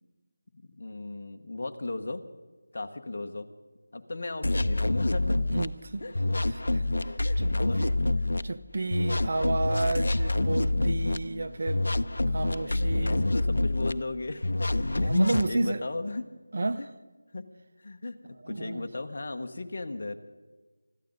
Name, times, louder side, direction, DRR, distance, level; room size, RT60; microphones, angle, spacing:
voice 1, 0.6-2.2 2.7-3.5 3.9-5.4 6.0-6.1 7.2-7.8 11.1-11.6 12.7-15.1 15.5-16.3 16.8-16.9 17.3-17.4 17.8-20.2, left 2 dB, 45° left, 5 dB, 1.2 m, -36 dB
sound 1, 4.4-5.7 6.1-8.4 8.9-11.2 11.7-13.9 14.4-15.5, left 2 dB, 75° left, 0.7 m, -26 dB
voice 2, 5.5-6.0 6.5-6.8 7.4-7.5 7.8-8.0 8.4-11.8 12.3-13.3 15.0-15.8 16.5-16.8 18.2-18.9, right 2 dB, 45° right, 12 dB, 0.7 m, -31 dB
24.5 x 13.5 x 4.0 m, 1.3 s
figure-of-eight pair, 175°, 0 cm